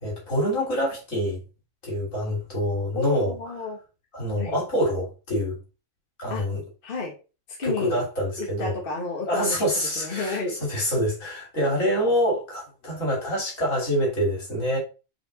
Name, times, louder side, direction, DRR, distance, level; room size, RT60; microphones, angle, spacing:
voice 1, 0.0-1.4 1.8-3.3 4.1-5.5 6.2-6.6 7.6-8.7 9.3-14.8, equal, 70° left, 3.3 m, -26 dB
voice 2, 2.9-3.8 4.4-4.6 6.3-6.4 6.8-7.1 7.6-8.0 8.4-9.6 10.0-10.6, left 3 dB, 40° left, 1.3 m, -31 dB
5.2 x 4.6 x 3.9 m
omnidirectional pair, 1.4 m